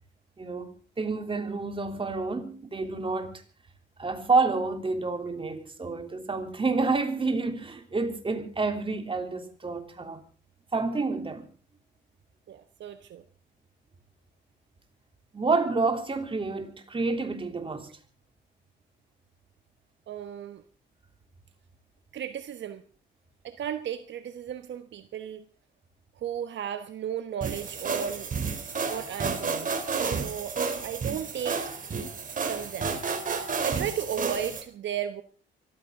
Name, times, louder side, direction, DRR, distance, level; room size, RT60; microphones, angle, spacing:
voice 1, 0.4-3.4 4.0-10.2 10.7-11.5 15.3-17.9, right 3 dB, 25° right, 3.3 m, -29 dB
voice 2, 12.5-13.2 20.1-20.6 22.1-22.8 23.4-25.4 26.2-28.3 28.8-29.7 30.0-30.5 30.8-31.7 32.4-33.0 33.6-35.2, right 9 dB, 65° right, 1.3 m, -35 dB
sound 1, 27.4-34.6, right 5 dB, 40° right, 3.4 m, -31 dB
24.5 x 14.0 x 3.8 m
cardioid pair, 90°, 20 cm